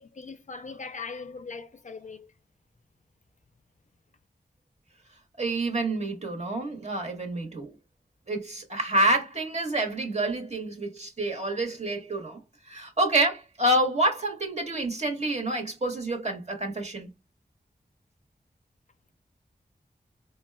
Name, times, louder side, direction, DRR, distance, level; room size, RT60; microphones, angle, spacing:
voice 1, 0.0-2.3, left 4 dB, 50° left, 0.4 m, -40 dB
voice 2, 5.4-7.7 8.3-12.4 12.7-17.1, right 1 dB, 40° right, 1.2 m, -28 dB
4.0 x 2.2 x 2.2 m
cardioid pair, 50°, 17 cm